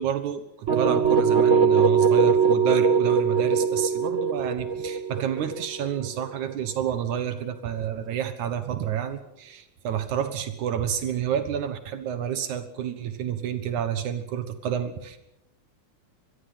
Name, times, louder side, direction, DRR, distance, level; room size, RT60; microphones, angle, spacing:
voice 1, 0.0-15.2, right 9 dB, 80° right, 10 dB, 2.7 m, -29 dB
sound 1, 0.7-6.5, right 6 dB, 30° right, 1.4 m, -21 dB
25.5 x 22.0 x 5.8 m, 0.81 s
omnidirectional pair, 3.4 m